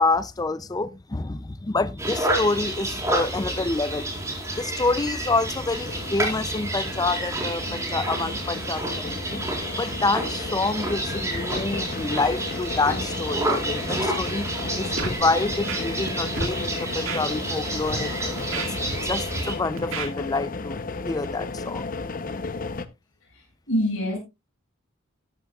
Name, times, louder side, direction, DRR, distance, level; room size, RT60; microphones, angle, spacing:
voice 1, 0.0-4.1 4.6-9.4 9.7-14.5 14.8-18.1 18.5-21.9, left 3 dB, 20° left, 0.4 m, -27 dB
sound 1, 2.0-19.5, right 1 dB, 15° right, 4.2 m, -29 dB
sound 2, 5.8-22.9, left 3 dB, 40° left, 0.8 m, -34 dB
Scratching (performance technique), 15.0-15.2 15.5-16.1 16.4-16.5 17.1-17.2 17.8-18.0 18.4-19.4 19.8-20.1, right 3 dB, 75° right, 2.3 m, -31 dB
voice 2, 23.3-24.2, equal, 70° left, 5.8 m, -26 dB
13.0 x 11.0 x 2.4 m
head